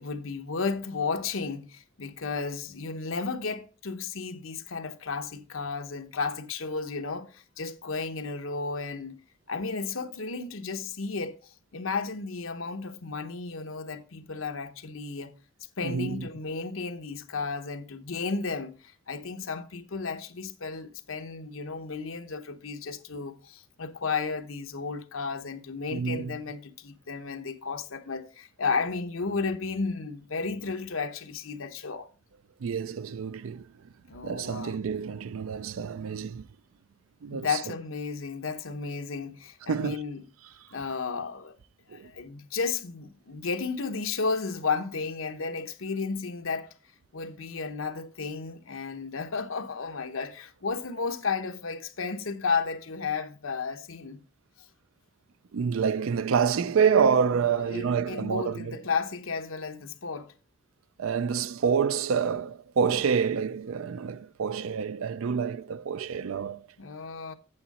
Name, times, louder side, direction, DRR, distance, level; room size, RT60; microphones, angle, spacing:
voice 1, 0.0-9.2 9.5-15.3 15.8-32.1 34.1-34.8 37.3-40.2 40.7-41.5 41.9-46.7 47.1-54.2 57.6-60.3 66.8-67.3, left 4 dB, 80° left, 0.9 m, -33 dB
voice 2, 15.8-16.3 25.9-26.4 32.6-33.7 34.2-36.5 37.2-37.5 39.7-40.0 41.9-42.1 55.5-58.8 61.0-66.6, right 6 dB, 85° right, 0.4 m, -27 dB
8.8 x 7.3 x 4.1 m
head